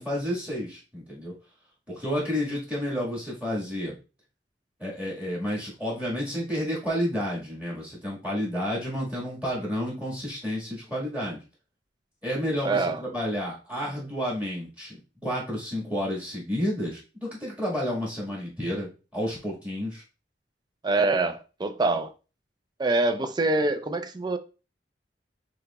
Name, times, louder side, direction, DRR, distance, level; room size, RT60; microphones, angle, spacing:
voice 1, 0.0-1.3 1.9-3.9 4.8-11.4 12.2-15.0 15.2-20.0, equal, 10° right, 1.7 m, -30 dB
voice 2, 12.6-13.0 20.8-22.1 22.8-24.4, right 2 dB, 25° right, 0.4 m, -25 dB
6.3 x 2.9 x 2.3 m
head